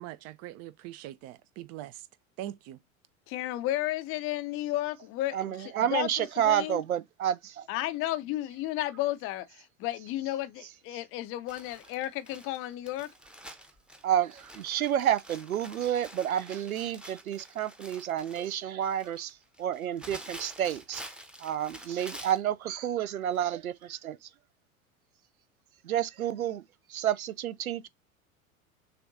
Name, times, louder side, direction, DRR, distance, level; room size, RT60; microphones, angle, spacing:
voice 1, 0.0-2.0 2.4-2.8, right 13 dB, 40° right, 0.6 m, -42 dB
voice 2, 3.3-5.4 5.9-6.8 7.7-13.1, left 15 dB, 30° left, 0.5 m, -33 dB
voice 3, 5.3-7.7 14.0-21.0 21.4-24.3 25.8-27.9, right 10 dB, 85° right, 0.6 m, -30 dB
Crumpling crinkling, 11.5-22.5 23.3-23.5 23.8-23.9, equal, ahead, 0.8 m, -48 dB
6.7 x 2.4 x 2.6 m
figure-of-eight pair, 85°, 41 cm